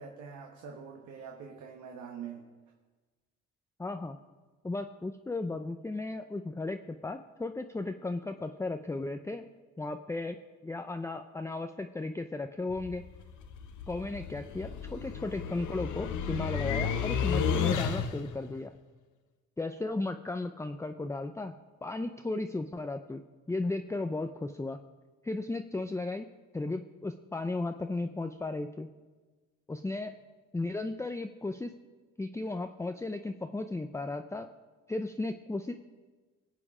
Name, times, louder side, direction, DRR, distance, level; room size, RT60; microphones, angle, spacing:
voice 1, 0.0-2.5, right 6 dB, 75° right, 1 dB, 1.5 m, -44 dB
voice 2, 3.8-4.2 4.6-9.4 9.8-10.4 10.6-13.0 13.9-18.7 19.6-21.5 21.8-23.2 23.5-24.8 25.2-26.3 26.5-28.9 29.7-30.1 30.5-31.7 32.2-34.5 34.9-35.7, left 2 dB, 10° left, 7 dB, 0.5 m, -35 dB
sound 1, 12.7-18.4, left 7 dB, 80° left, 1.1 m, -32 dB
21.0 x 7.7 x 4.9 m, 1.3 s
cardioid pair, 90°, 30 cm